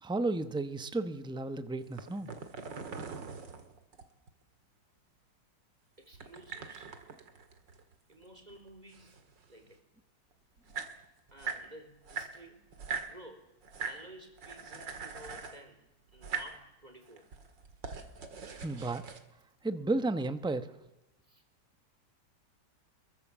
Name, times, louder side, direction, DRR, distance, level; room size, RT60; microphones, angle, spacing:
voice 1, 0.0-2.3 18.6-19.0 19.6-20.7, right 2 dB, 5° right, 11 dB, 0.7 m, -33 dB
sound 1, 1.8-4.3 6.1-8.2 8.5-9.7 10.3-10.4 10.6-11.7 12.1-13.1 13.6-14.0 14.4-15.6 16.1-16.6 17.1-19.2, right 5 dB, 90° right, 2.6 m, -41 dB
voice 2, 6.0-7.0 8.1-9.2 9.5-9.8 11.3-12.7 13.1-15.8 16.1-17.3 21.2-21.4, right 1 dB, 20° right, 5 dB, 4.0 m, -53 dB
25.0 x 22.5 x 7.4 m, 0.93 s
omnidirectional pair, 1.9 m